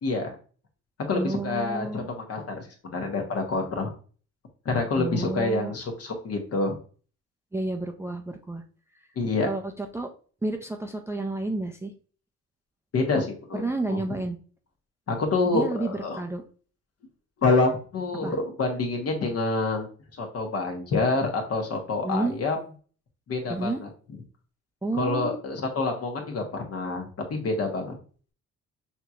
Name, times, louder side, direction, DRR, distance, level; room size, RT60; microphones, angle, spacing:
voice 1, 0.0-0.3 1.1-3.9 4.6-6.7 9.2-9.5 12.9-13.6 13.9-14.0 15.1-16.2 17.4-19.9 20.2-22.6 23.3-23.9 24.9-27.9, left 3 dB, 50° left, 2 dB, 1.2 m, -27 dB
voice 2, 1.1-2.1 5.0-5.7 7.5-8.6 9.4-10.1 10.4-11.9 13.6-14.4 15.5-16.4 18.2-18.3 22.0-22.3 23.5-23.8 24.8-25.4, right 2 dB, 10° right, 4 dB, 0.4 m, -30 dB
5.6 x 2.9 x 2.4 m, 0.40 s
cardioid pair, 90°, 30 cm